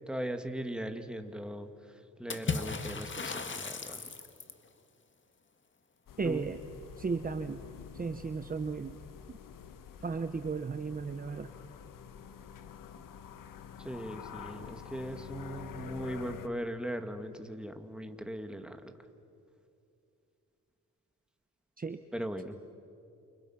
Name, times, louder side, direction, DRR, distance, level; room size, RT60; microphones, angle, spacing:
voice 1, 0.1-4.0 6.2-6.5 13.8-18.9 22.1-22.6, right 1 dB, 5° right, 6 dB, 2.2 m, -39 dB
Water / Splash splatter, 2.3-4.7, left 4 dB, 35° left, 1.9 m, -36 dB
sound 1, 6.1-16.5, left 8 dB, 80° left, 1.4 m, -47 dB
voice 2, 6.2-6.6 7.0-7.6 7.9-9.0 9.3-9.4 10.0-11.5 21.8-22.0, right 4 dB, 25° right, 10 dB, 0.9 m, -35 dB
29.0 x 29.0 x 5.9 m, 2.6 s
cardioid pair, 90°, 32 cm